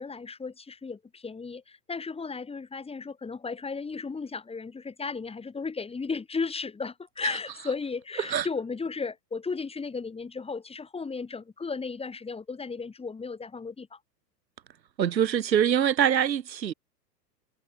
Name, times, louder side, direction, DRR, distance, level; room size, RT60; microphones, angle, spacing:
voice 1, 0.0-14.0, left 4 dB, 10° left, 4.7 m, -35 dB
voice 2, 15.0-16.7, right 9 dB, 85° right, 4.5 m, -24 dB
hypercardioid pair, 120°, 50 cm